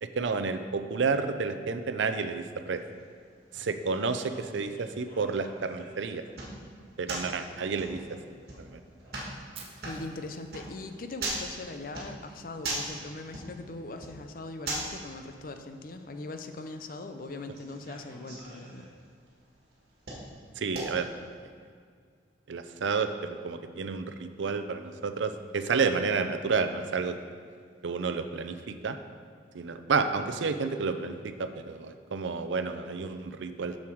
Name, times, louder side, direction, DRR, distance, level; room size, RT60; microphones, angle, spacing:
voice 1, 0.0-2.8 3.5-6.2 7.0-8.2 8.6-8.8 20.6-21.1 22.5-27.2 27.8-29.0 29.5-33.8, right 4 dB, 80° right, 9 dB, 0.5 m, -30 dB
sound 1, 2.7-21.3, right 2 dB, 55° right, 1.8 m, -42 dB
Fire, 9.5-11.6, right 6 dB, 30° right, 0.8 m, -51 dB
voice 2, 9.8-18.9, left 2 dB, 50° left, 7 dB, 0.5 m, -41 dB
7.1 x 6.5 x 4.6 m, 2.1 s
head